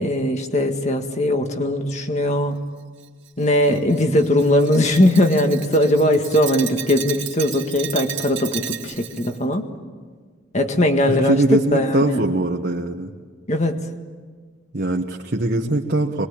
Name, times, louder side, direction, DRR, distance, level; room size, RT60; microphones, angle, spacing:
voice 1, 0.0-2.6 3.4-9.7 10.5-12.2 13.5-13.9, left 1 dB, 35° left, 5 dB, 1.8 m, -19 dB
Glass, 3.0-9.4, right 11 dB, 85° right, 1.9 m, -33 dB
voice 2, 11.1-13.1 14.7-16.3, right 2 dB, 55° right, 0 dB, 1.3 m, -21 dB
25.0 x 21.0 x 8.7 m, 1.5 s
head